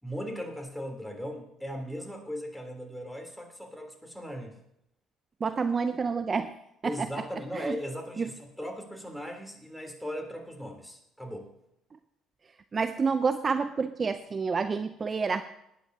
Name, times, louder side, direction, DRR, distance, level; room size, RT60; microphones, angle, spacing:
voice 1, 0.0-4.6 6.8-11.5, equal, 5° left, 2 dB, 3.4 m, -38 dB
voice 2, 5.4-6.5 6.8-7.1 7.5-7.8 8.2-8.3 12.7-15.4, right 5 dB, 35° right, 11 dB, 0.6 m, -28 dB
19.5 x 10.0 x 2.8 m, 0.79 s
hypercardioid pair, 55°, 0 cm